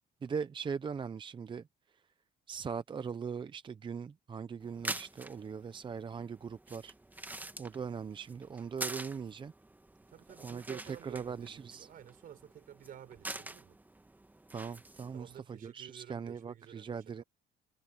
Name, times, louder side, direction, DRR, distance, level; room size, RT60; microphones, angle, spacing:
voice 1, 0.2-1.7 2.5-6.9 7.6-9.5 10.4-11.9 14.5-17.2, right 6 dB, 30° right, 0.7 m, -40 dB
sound 1, 4.6-15.4, right 2 dB, 10° right, 1.5 m, -46 dB
voice 2, 10.1-13.8 15.1-17.2, right 10 dB, 60° right, 4.2 m, -52 dB
cardioid pair, 110°, 17 cm